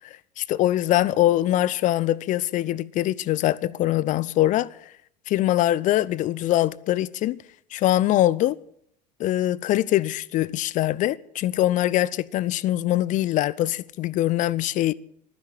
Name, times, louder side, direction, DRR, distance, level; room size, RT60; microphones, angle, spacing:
voice 1, 0.4-4.7 5.3-7.4 7.7-8.6 9.2-14.9, left 14 dB, 35° left, 0.6 m, -23 dB
14.0 x 10.5 x 9.1 m
figure-of-eight pair, 70°, 21 cm